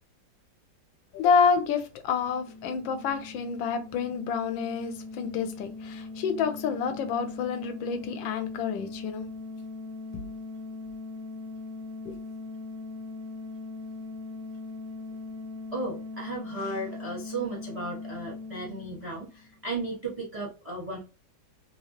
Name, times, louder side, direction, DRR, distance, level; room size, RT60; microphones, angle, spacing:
voice 1, 1.1-9.3 10.1-10.2 12.0-12.2, left 6 dB, 80° left, 1.4 m, -28 dB
sound 1, 2.1-19.6, left 3 dB, 70° right, 0.8 m, -40 dB
voice 2, 15.7-21.0, right 2 dB, 35° right, 0.5 m, -35 dB
3.4 x 2.8 x 2.9 m
omnidirectional pair, 2.1 m